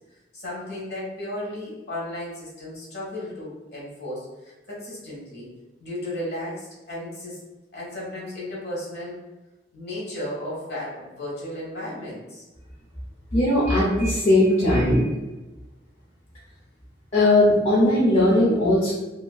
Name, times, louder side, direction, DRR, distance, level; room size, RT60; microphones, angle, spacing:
voice 1, 0.3-5.5 5.8-7.4 7.7-9.2 9.7-12.5, left 1 dB, 65° left, -5 dB, 1.1 m, -34 dB
voice 2, 13.3-15.1 17.1-18.9, left 1 dB, 35° left, -7 dB, 0.6 m, -19 dB
2.8 x 2.4 x 2.3 m, 1.1 s
head